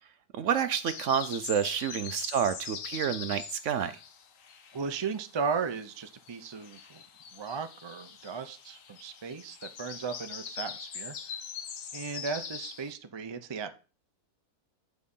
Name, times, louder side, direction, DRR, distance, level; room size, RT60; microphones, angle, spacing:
voice 1, 0.3-4.0, right 8 dB, 65° right, 12 dB, 0.8 m, -29 dB
sound 1, 0.9-5.2 5.5-12.9, left 7 dB, 60° left, 1.2 m, -42 dB
voice 2, 4.7-7.0 7.3-11.2 11.9-13.7, right 5 dB, 40° right, 9 dB, 0.4 m, -36 dB
8.8 x 4.6 x 5.4 m, 0.34 s
omnidirectional pair, 1.6 m